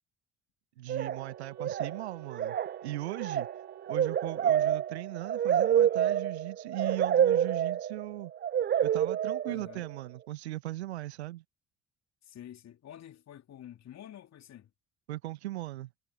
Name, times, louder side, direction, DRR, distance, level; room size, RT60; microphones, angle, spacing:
voice 1, 0.8-2.6 2.8-3.5 3.9-8.3 8.8-11.4 15.1-15.9, right 16 dB, 80° right, 1.4 m, -38 dB
sound 1, 0.9-1.3 1.6-2.0 2.3-9.9, right 9 dB, 30° right, 0.5 m, -28 dB
Wind instrument woodwind instrument, 1.2-5.6, right 13 dB, 60° right, 5.9 m, -54 dB
voice 2, 9.5-9.9 12.2-14.7, left 11 dB, 55° left, 3.2 m, -48 dB
figure-of-eight pair, 40°, 32 cm